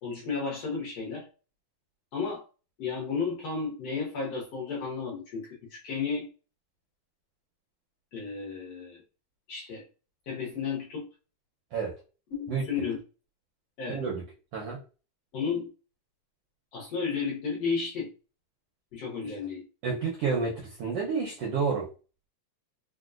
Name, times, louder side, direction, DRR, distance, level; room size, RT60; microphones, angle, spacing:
voice 1, 0.0-1.3 2.1-2.4 2.8-6.3 8.1-9.0 9.5-9.8 10.3-11.1 12.3-13.0 13.8-14.0 15.3-15.7 16.7-18.1 18.9-19.6, left 5 dB, 65° left, -3 dB, 1.7 m, -33 dB
voice 2, 13.9-14.2 14.5-14.8 19.8-21.9, right 5 dB, 75° right, -2 dB, 1.3 m, -29 dB
4.7 x 2.2 x 2.4 m, 0.34 s
omnidirectional pair, 3.4 m